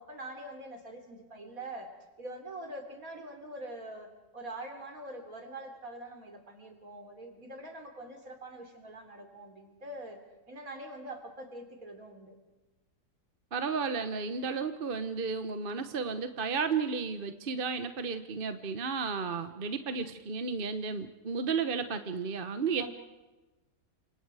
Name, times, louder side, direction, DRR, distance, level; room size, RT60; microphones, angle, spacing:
voice 1, 0.0-1.9 2.2-10.2 10.5-12.4 22.8-22.9, right 1 dB, 60° right, 4 dB, 4.0 m, -44 dB
voice 2, 13.5-22.9, right 5 dB, 40° right, 9 dB, 1.1 m, -33 dB
29.5 x 26.0 x 4.9 m, 1.1 s
omnidirectional pair, 1.7 m